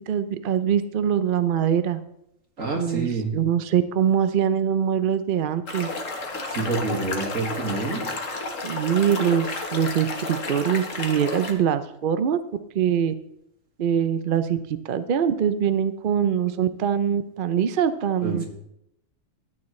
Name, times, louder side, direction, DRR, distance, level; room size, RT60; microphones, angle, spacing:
voice 1, 0.0-2.0 2.8-5.9 8.6-12.4 12.7-13.1 13.8-14.6 14.8-18.4, right 8 dB, 55° right, 11 dB, 0.7 m, -23 dB
voice 2, 2.6-3.3 6.5-8.0 18.2-18.4, right 3 dB, 85° right, 1 dB, 2.4 m, -27 dB
sound 1, 5.7-11.5, left 3 dB, 75° left, 1.8 m, -31 dB
13.0 x 9.7 x 3.2 m, 0.78 s
omnidirectional pair, 1.3 m